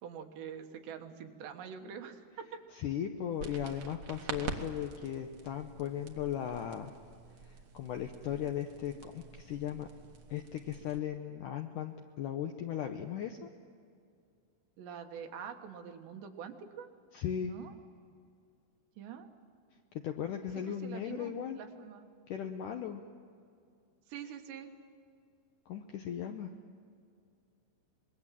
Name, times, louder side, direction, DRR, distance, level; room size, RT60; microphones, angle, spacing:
voice 1, 0.0-2.6 14.8-16.9 17.4-17.7 19.0-19.3 20.7-22.1 24.1-24.7, right 7 dB, 90° right, 5 dB, 3.6 m, -45 dB
voice 2, 2.7-6.9 7.4-9.9 10.3-13.5 17.1-17.6 19.9-21.6 22.3-23.0 25.7-26.5, left 9 dB, 80° left, 5 dB, 1.9 m, -37 dB
sound 1, 3.4-11.0, right 5 dB, 60° right, 1.5 m, -46 dB
25.5 x 21.5 x 7.5 m, 2.3 s
omnidirectional pair, 4.8 m